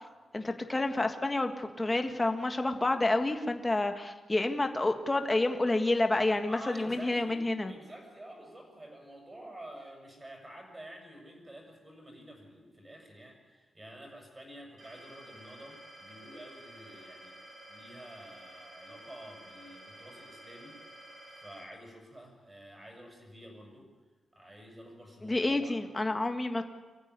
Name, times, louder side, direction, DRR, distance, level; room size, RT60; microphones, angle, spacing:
voice 1, 0.3-7.7 25.2-26.6, left 2 dB, 20° left, 6 dB, 1.7 m, -29 dB
voice 2, 6.5-17.4 17.7-23.9 24.3-25.8, right 1 dB, 15° right, 1 dB, 6.9 m, -49 dB
sound 1, 14.8-21.6, right 1 dB, 45° right, 7.3 m, -51 dB
25.0 x 15.0 x 9.6 m, 1.3 s
wide cardioid pair, 135°, 0 cm